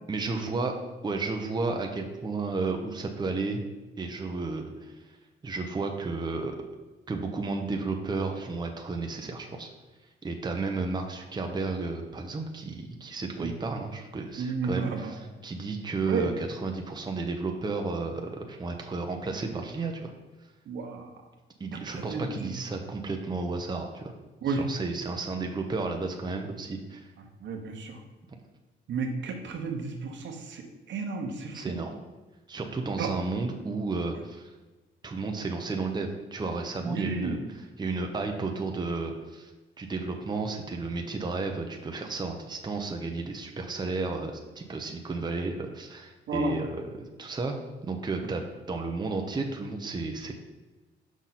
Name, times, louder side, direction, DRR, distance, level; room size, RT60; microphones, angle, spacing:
voice 1, 0.1-0.7 1.0-3.6 4.0-4.9 5.4-6.5 7.1-9.7 10.2-20.1 21.6-24.1 24.4-27.1 31.5-31.9 32.5-34.5 35.0-39.5 39.8-47.6 47.8-50.3, right 3 dB, 20° right, 2 dB, 0.8 m, -32 dB
voice 2, 14.4-15.1 16.1-16.3 20.7-21.1 21.9-22.5 24.4-24.6 27.4-28.0 28.9-30.6 30.9-31.8 33.0-33.1 36.9-37.4 46.3-46.5, right 4 dB, 65° right, 3 dB, 1.1 m, -32 dB
6.0 x 5.9 x 4.1 m, 1.2 s
cardioid pair, 90°, 20 cm